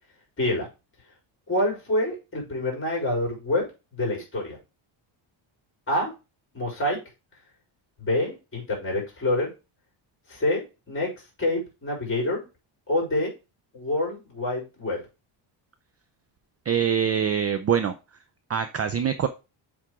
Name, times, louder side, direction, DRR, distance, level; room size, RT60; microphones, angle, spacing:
voice 1, 1.5-3.6 3.9-4.6 5.9-6.1 6.5-7.0 8.0-9.5 10.3-11.1 11.4-12.4 12.9-13.3 13.7-15.0, left 1 dB, 25° left, -1 dB, 4.4 m, -26 dB
voice 2, 16.7-17.9 18.5-19.3, right 8 dB, 30° right, 10 dB, 0.4 m, -24 dB
7.5 x 3.8 x 4.8 m, 0.28 s
cardioid pair, 140°, 50 cm